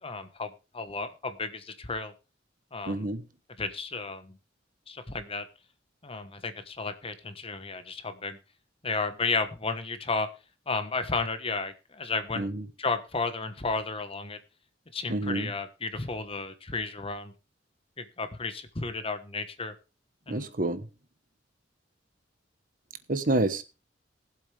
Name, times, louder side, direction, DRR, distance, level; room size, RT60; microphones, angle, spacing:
voice 1, 0.0-2.1 2.7-3.1 3.6-4.4 4.9-5.4 6.0-8.4 8.8-10.3 10.7-12.5 12.8-14.4 14.9-17.3 18.0-19.7 20.3-20.5, left 4 dB, 30° left, 1.3 m, -33 dB
voice 2, 2.9-3.2 12.4-12.6 15.1-15.5 20.3-20.8 23.1-23.6, right 2 dB, 50° right, 1.2 m, -28 dB
19.0 x 7.9 x 3.4 m
head